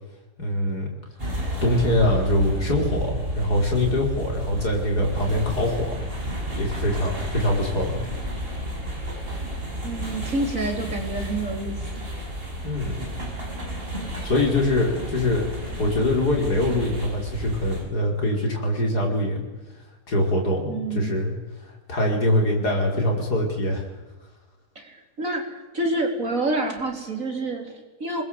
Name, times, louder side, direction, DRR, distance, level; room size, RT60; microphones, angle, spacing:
voice 1, 0.4-0.9 1.6-6.0 6.6-8.0 12.6-13.1 14.2-15.4 15.8-19.4 20.1-21.4 21.9-23.9, left 1 dB, 75° left, 1 dB, 5.6 m, -23 dB
sound 1, 1.2-17.8, right 1 dB, 35° right, 6.7 m, -31 dB
voice 2, 9.8-12.0 20.7-21.1 24.8-28.2, right 2 dB, 55° right, 2 dB, 4.4 m, -28 dB
27.0 x 21.5 x 8.1 m, 1.2 s
omnidirectional pair, 1.7 m